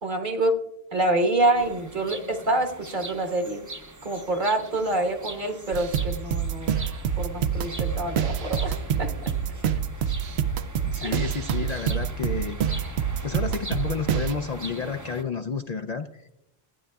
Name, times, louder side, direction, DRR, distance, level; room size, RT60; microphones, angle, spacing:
voice 1, 0.0-0.6 0.9-3.6 4.0-6.8 7.1-9.1 11.0-11.1, right 2 dB, 55° right, 4 dB, 1.4 m, -26 dB
sound 1, 1.5-15.2, right 2 dB, 20° right, 0.6 m, -42 dB
sound 2, 5.7-14.3, right 8 dB, 85° right, 0.8 m, -27 dB
sound 3, 7.1-10.1, right 1 dB, 40° right, 1.0 m, -43 dB
voice 2, 10.8-12.6 13.2-16.3, left 5 dB, 50° left, 6 dB, 0.5 m, -31 dB
15.5 x 9.6 x 2.3 m, 0.81 s
omnidirectional pair, 1.0 m